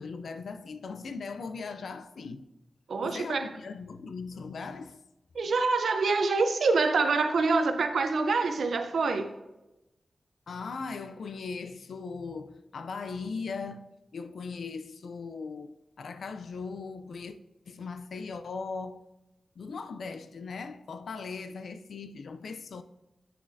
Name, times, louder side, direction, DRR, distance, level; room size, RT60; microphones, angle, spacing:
voice 1, 0.0-2.5 3.0-5.0 10.5-17.4 17.7-19.0 19.6-22.8, left 4 dB, 90° left, 0.4 m, -39 dB
voice 2, 2.9-3.5 5.3-9.3, right 4 dB, 85° right, 0.6 m, -26 dB
8.5 x 6.3 x 2.6 m
wide cardioid pair, 155°, 0 cm